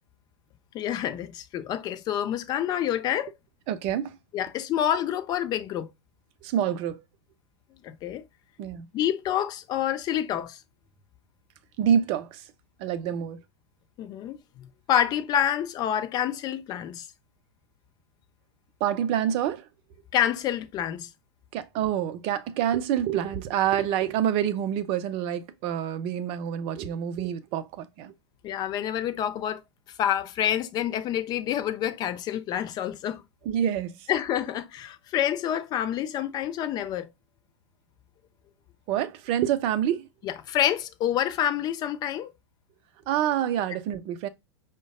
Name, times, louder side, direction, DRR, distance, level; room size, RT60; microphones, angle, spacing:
voice 1, 0.7-3.3 4.3-5.9 7.8-8.2 8.9-10.6 14.0-17.1 20.1-21.1 28.4-29.6 30.0-33.2 34.1-37.1 40.2-42.3, left 10 dB, 30° left, 0.4 m, -28 dB
voice 2, 3.7-4.1 6.4-7.0 8.6-8.9 11.8-12.4 12.8-13.4 18.8-19.6 21.5-28.1 33.5-33.9 38.9-40.1 43.1-44.3, right 10 dB, 40° right, 0.5 m, -27 dB
5.0 x 2.2 x 2.3 m
figure-of-eight pair, 100°, 15 cm